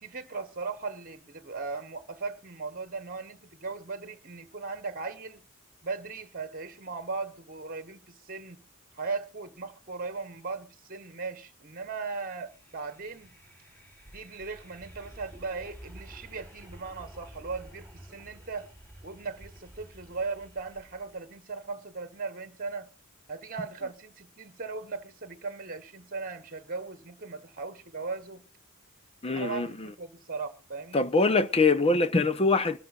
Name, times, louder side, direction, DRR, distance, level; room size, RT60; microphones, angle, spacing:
voice 1, 0.0-5.4 5.8-8.6 9.0-13.3 14.1-18.7 19.0-22.9 23.3-28.4 29.3-31.0, right 4 dB, 40° right, 1.3 m, -38 dB
sound 1, 12.4-21.4, right 1 dB, 10° left, 4.5 m, -51 dB
voice 2, 29.2-29.9 30.9-32.8, left 3 dB, 25° left, 0.8 m, -24 dB
25.5 x 13.5 x 2.5 m
head